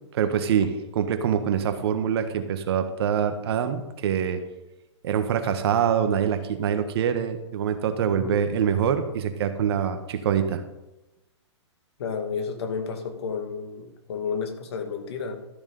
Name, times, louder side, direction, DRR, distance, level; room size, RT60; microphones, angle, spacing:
voice 1, 0.1-4.4 5.0-10.6, right 8 dB, 55° right, 8 dB, 1.5 m, -25 dB
voice 2, 8.0-8.4 12.0-15.4, left 5 dB, 60° left, 5 dB, 2.1 m, -31 dB
13.5 x 7.1 x 5.4 m, 0.97 s
hypercardioid pair, 125°, 15 cm